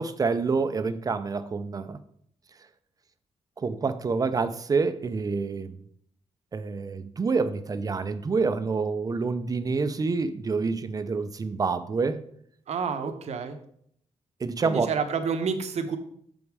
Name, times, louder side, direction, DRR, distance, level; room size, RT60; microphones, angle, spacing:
voice 1, 0.0-2.0 3.6-5.8 6.5-12.2 13.0-13.1 14.4-14.9, right 4 dB, 30° right, 11 dB, 0.5 m, -27 dB
voice 2, 12.7-13.6 14.6-16.0, right 5 dB, 60° right, 7 dB, 0.9 m, -29 dB
7.0 x 5.3 x 4.7 m, 0.66 s
wide cardioid pair, 160°, 13 cm